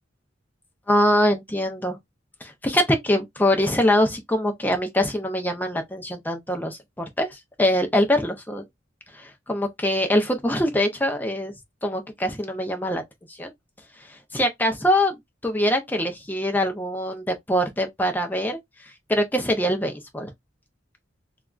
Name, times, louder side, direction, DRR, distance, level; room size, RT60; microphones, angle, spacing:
voice 1, 0.9-2.0 2.4-8.6 9.1-11.5 11.8-13.0 13.3-13.5 14.0-20.3, equal, 10° left, 0.6 m, -23 dB
3.3 x 2.4 x 2.4 m
head